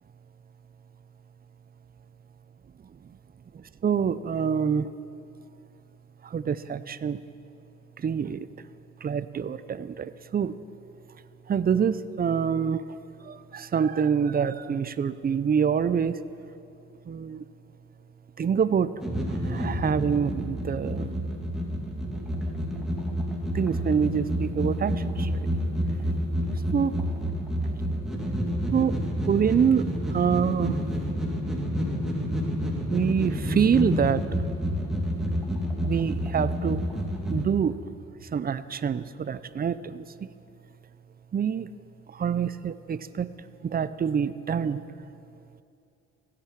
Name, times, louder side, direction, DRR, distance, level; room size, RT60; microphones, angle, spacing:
voice 1, 3.5-4.9 6.2-7.2 8.0-8.5 9.0-10.6 11.5-12.8 13.2-16.2 17.1-17.4 18.4-18.9 19.5-21.3 23.5-25.5 26.7-27.0 28.7-29.0 29.2-30.8 32.9-34.2 35.8-36.8 37.3-37.8 38.3-40.1 41.3-41.7 42.1-43.3 43.6-44.8, right 7 dB, 30° right, 15 dB, 0.5 m, -26 dB
sound 1, 19.0-37.4, equal, ahead, 2.4 m, -29 dB
15.5 x 8.7 x 7.4 m, 2.7 s
cardioid pair, 90°, 30 cm